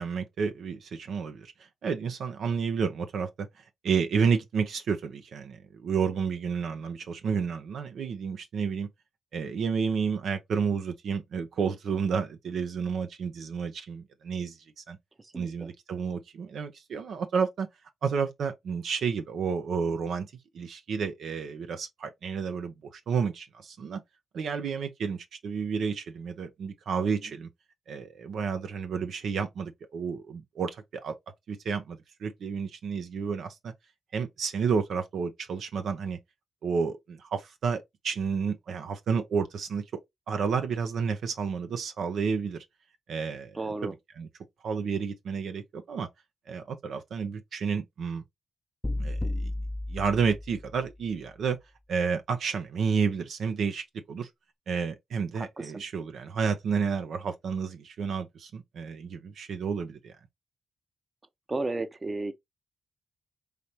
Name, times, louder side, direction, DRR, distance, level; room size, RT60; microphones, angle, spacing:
voice 1, 0.0-1.5 1.8-3.5 3.8-8.9 9.3-15.0 15.3-17.7 18.0-20.3 20.5-24.0 24.3-27.5 27.9-31.2 31.5-33.7 34.1-36.2 36.6-39.8 40.3-42.6 43.1-44.3 44.6-46.1 46.5-48.2 49.0-49.5 49.9-51.6 51.9-54.3 54.7-60.1, right 6 dB, 75° right, 0.7 m, -31 dB
voice 2, 43.6-43.9 55.3-55.8 61.5-62.3, right 2 dB, 35° right, 0.8 m, -33 dB
sound 1, 48.8-50.9, left 1 dB, 20° left, 0.5 m, -33 dB
5.0 x 2.8 x 2.9 m
supercardioid pair, 55°, 0 cm